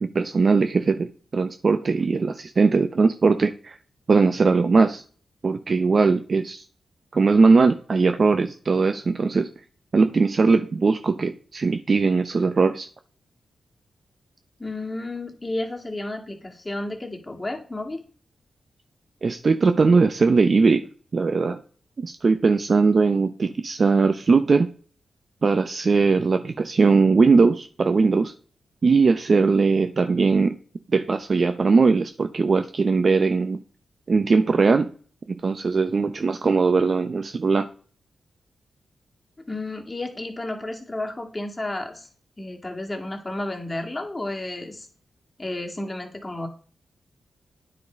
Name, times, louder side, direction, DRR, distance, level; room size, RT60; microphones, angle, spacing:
voice 1, 0.0-3.8 4.1-5.0 5.4-6.6 7.1-9.5 9.9-12.9 19.2-20.9 21.1-21.6 22.0-24.7 25.4-28.3 28.8-30.6 30.9-33.6 34.1-34.9 35.3-37.7, right 4 dB, 45° right, 9 dB, 0.6 m, -20 dB
voice 2, 14.6-18.0 39.5-42.1 42.4-44.9 45.4-46.5, left 2 dB, 20° left, 2 dB, 2.1 m, -32 dB
9.6 x 5.1 x 5.1 m, 0.42 s
wide cardioid pair, 100°, 0 cm